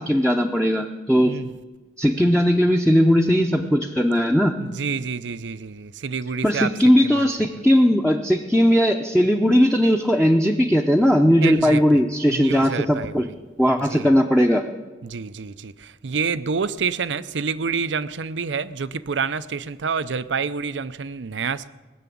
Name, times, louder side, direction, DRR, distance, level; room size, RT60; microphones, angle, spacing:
voice 1, 0.0-1.4 2.0-4.6 6.4-13.3 13.6-14.6, equal, 5° left, 1 dB, 0.7 m, -18 dB
voice 2, 1.2-1.5 4.6-6.7 7.0-7.3 11.4-12.0 12.3-13.3 13.8-14.1 15.0-21.7, right 5 dB, 90° right, 14 dB, 0.6 m, -28 dB
19.5 x 6.9 x 8.5 m, 1.2 s
head